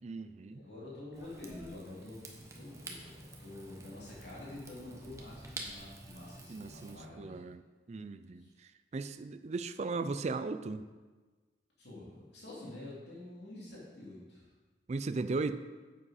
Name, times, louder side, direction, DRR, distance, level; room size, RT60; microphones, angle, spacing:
voice 1, 0.0-0.6 6.5-7.6 7.9-10.8 14.9-15.6, right 3 dB, 40° right, 11 dB, 0.4 m, -37 dB
voice 2, 0.6-2.2 2.5-7.5 8.3-8.5 11.8-14.5, left 2 dB, 65° left, -6 dB, 2.8 m, -48 dB
Rain / Fire, 1.1-7.0, right 2 dB, 15° right, 1.0 m, -49 dB
9.7 x 7.6 x 4.2 m, 1.3 s
head